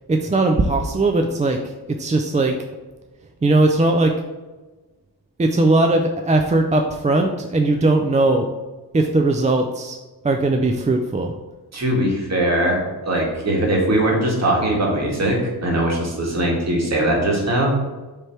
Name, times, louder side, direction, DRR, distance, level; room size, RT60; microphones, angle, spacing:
voice 1, 0.1-1.6 2.0-2.6 3.4-4.1 5.4-8.5 8.9-10.0 10.2-11.3, right 2 dB, 20° right, 4 dB, 0.3 m, -18 dB
voice 2, 11.7-17.8, right 1 dB, 40° right, -1 dB, 1.7 m, -20 dB
7.8 x 3.3 x 4.4 m, 1.2 s
wide cardioid pair, 145°, 40 cm